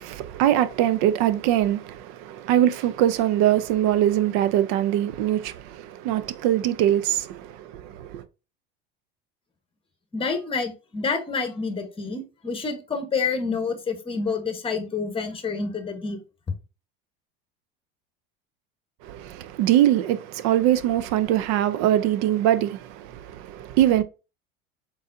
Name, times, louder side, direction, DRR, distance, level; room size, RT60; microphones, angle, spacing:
voice 1, 0.0-8.2 19.0-24.0, right 12 dB, 65° right, 0.6 m, -22 dB
voice 2, 10.1-16.2, left 4 dB, 20° left, 1.1 m, -28 dB
3.9 x 3.9 x 2.6 m
supercardioid pair, 105°, 30 cm